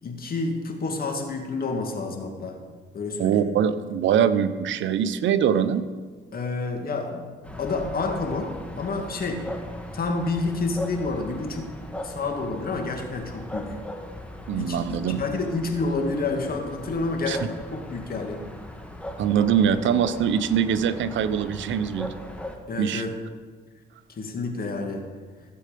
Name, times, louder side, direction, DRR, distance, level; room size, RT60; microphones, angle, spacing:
voice 1, 0.0-2.6 2.9-3.5 6.3-7.3 7.6-9.5 9.9-11.7 12.0-13.8 14.5-18.4 22.7-23.1 24.2-25.0, left 3 dB, 50° left, 3 dB, 2.1 m, -29 dB
voice 2, 3.2-5.8 14.5-15.2 17.3-17.4 19.2-22.1 22.8-23.1, right 8 dB, 70° right, 12 dB, 0.8 m, -23 dB
sound 1, 7.4-22.6, left 1 dB, 5° left, 1.5 m, -39 dB
16.0 x 7.7 x 5.2 m, 1.5 s
cardioid pair, 90°, 20 cm